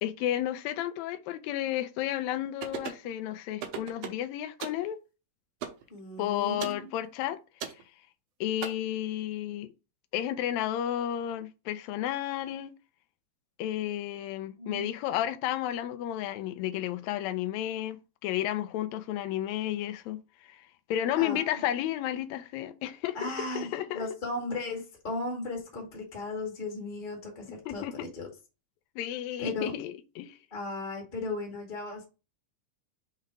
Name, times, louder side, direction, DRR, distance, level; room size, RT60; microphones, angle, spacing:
voice 1, 0.0-5.0 6.2-7.4 8.4-9.7 10.1-12.7 13.6-24.0 27.7-28.1 28.9-30.4, left 12 dB, 80° left, 1.7 m, -32 dB
sound 1, 2.6-3.1 3.6-4.2 4.6-4.8 5.6-5.8 6.6-6.8 7.6-7.8 8.6-8.7, right 8 dB, 65° right, 1.8 m, -37 dB
voice 2, 5.9-6.9 14.6-14.9 21.1-21.5 23.1-28.3 29.4-29.7 30.5-32.0, left 2 dB, 20° left, 1.4 m, -36 dB
5.4 x 3.8 x 4.8 m
omnidirectional pair, 3.8 m